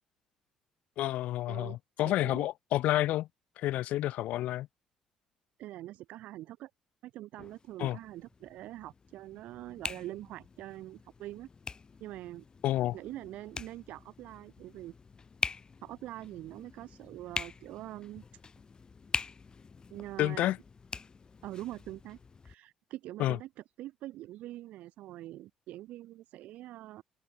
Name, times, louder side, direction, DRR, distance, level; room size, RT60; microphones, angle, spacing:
voice 1, 1.0-3.3 3.6-4.7 7.8-8.0 12.6-13.0 20.2-20.6 23.2-23.4, left 14 dB, 75° left, 0.5 m, -29 dB
voice 2, 2.0-2.5 5.6-6.7 7.0-11.5 12.0-12.4 12.9-14.9 15.8-18.2 19.9-20.5 21.4-22.2 22.4-23.5 23.8-27.0, right 15 dB, 75° right, 0.6 m, -44 dB
sound 1, 7.4-22.5, left 5 dB, 35° left, 1.6 m, -43 dB
open air
supercardioid pair, 70°, 2 cm